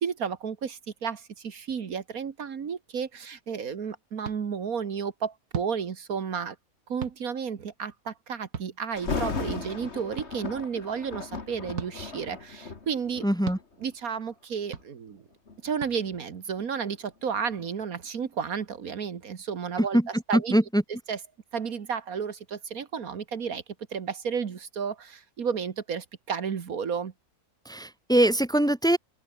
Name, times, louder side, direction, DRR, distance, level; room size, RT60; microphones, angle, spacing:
voice 1, 0.0-6.6 6.9-13.2 13.8-15.2 15.6-20.0 20.3-20.6 21.1-21.2 21.5-23.6 23.9-27.1, right 6 dB, 70° right, 1.9 m, -32 dB
sound 1, 4.2-4.4 5.5-5.7 7.0-7.2 8.5-8.7 10.2-10.3 11.7-11.9 13.4-13.6 14.7-14.9 15.8-15.9, right 7 dB, 90° right, 2.2 m, -35 dB
Thunder, 9.0-13.9 14.6-14.8 15.5-18.3 18.6-18.7, left 4 dB, 45° left, 2.4 m, -36 dB
voice 2, 13.2-13.6 19.8-20.8 27.7-29.0, right 1 dB, 5° left, 1.9 m, -23 dB
open air
omnidirectional pair, 1.6 m